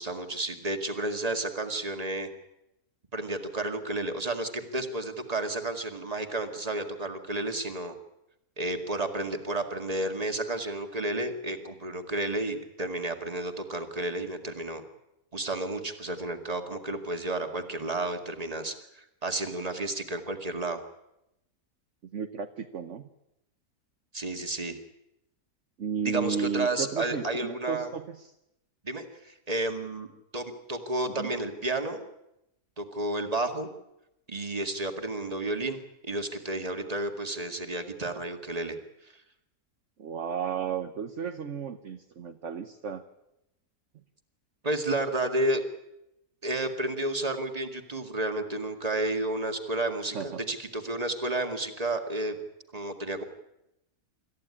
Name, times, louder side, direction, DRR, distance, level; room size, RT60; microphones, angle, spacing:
voice 1, 0.0-2.3 3.1-7.9 8.6-14.8 15.3-20.8 24.1-24.8 26.0-27.9 28.8-30.1 30.3-32.1 32.8-33.7 34.3-38.8 39.0-39.1 44.6-45.6 46.4-52.4 52.7-53.2, right 2 dB, 25° right, 5 dB, 2.1 m, -31 dB
voice 2, 22.1-23.1 25.8-28.3 31.2-31.3 40.0-43.0 50.1-50.4, right 6 dB, 55° right, 7 dB, 1.2 m, -33 dB
26.5 x 14.5 x 9.8 m, 0.87 s
omnidirectional pair, 1.6 m